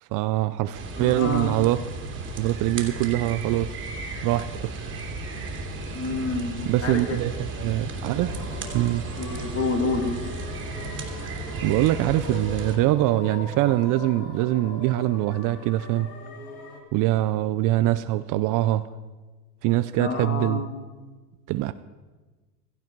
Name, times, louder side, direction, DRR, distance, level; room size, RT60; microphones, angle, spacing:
voice 1, 0.0-1.8 2.4-3.7 4.2-4.5 6.7-8.3 8.7-9.0 11.6-16.1 16.9-18.9 19.6-20.6 21.5-21.7, right 16 dB, 45° right, 13 dB, 0.5 m, -23 dB
sound 1, 0.7-12.8, right 3 dB, 25° right, 2.6 m, -34 dB
voice 2, 1.0-1.6 5.9-7.2 9.2-10.2 20.0-20.8, left 3 dB, 30° left, 5 dB, 2.5 m, -28 dB
sound 2, 8.1-16.8, left 3 dB, 75° left, 3.0 m, -41 dB
16.5 x 14.5 x 4.6 m, 1.3 s
supercardioid pair, 115°, 47 cm